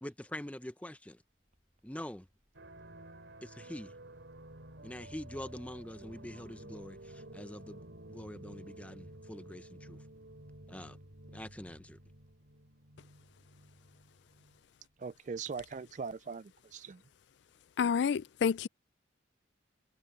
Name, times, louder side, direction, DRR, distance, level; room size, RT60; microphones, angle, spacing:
voice 1, 0.0-1.2 1.8-2.3 3.4-3.9 4.8-7.8 8.1-10.0 10.7-11.0 11.3-12.0, left 1 dB, 5° left, 0.7 m, -44 dB
Vehicle horn car horn honking, 1.2-16.5, equal, 10° right, 5.0 m, -71 dB
sound 1, 2.5-14.6, right 1 dB, 70° right, 3.3 m, -52 dB
voice 2, 15.0-17.0, right 5 dB, 40° right, 0.3 m, -41 dB
voice 3, 17.8-18.7, left 6 dB, 60° left, 0.3 m, -29 dB
head